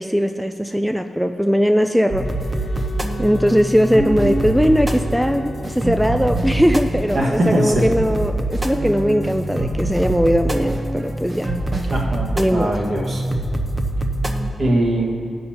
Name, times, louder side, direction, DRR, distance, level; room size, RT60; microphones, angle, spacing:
voice 1, 0.0-2.3 3.2-11.5 12.4-12.7, equal, ahead, 6 dB, 0.3 m, -19 dB
sound 1, 2.1-14.5, right 1 dB, 20° right, 0.7 m, -24 dB
Wind instrument woodwind instrument, 2.2-6.7, left 6 dB, 60° left, 0.5 m, -38 dB
sound 2, 2.4-12.0, right 2 dB, 35° right, 1.1 m, -39 dB
voice 2, 7.1-7.9 11.9-13.2 14.6-15.1, right 1 dB, 55° right, -2 dB, 1.5 m, -21 dB
15.5 x 5.4 x 2.9 m, 2.6 s
cardioid pair, 85°, 0 cm